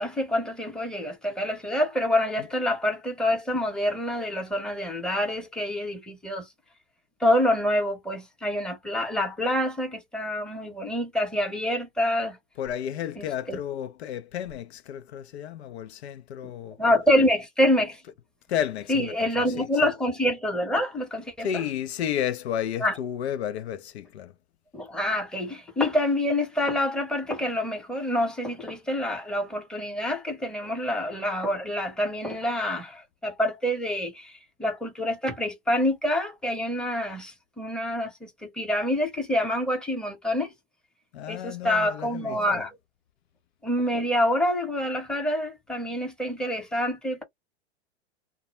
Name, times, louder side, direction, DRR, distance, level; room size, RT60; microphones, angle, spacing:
voice 1, 0.0-6.5 7.2-12.4 13.2-13.6 16.8-18.0 18.9-21.6 22.8-22.9 24.7-40.5 41.3-42.8 43.6-47.2, left 1 dB, ahead, 0.8 m, -27 dB
voice 2, 12.6-16.8 18.5-19.7 21.4-24.3 41.1-42.6, left 10 dB, 75° left, 0.5 m, -32 dB
2.1 x 2.0 x 3.0 m
hypercardioid pair, 105°, 33 cm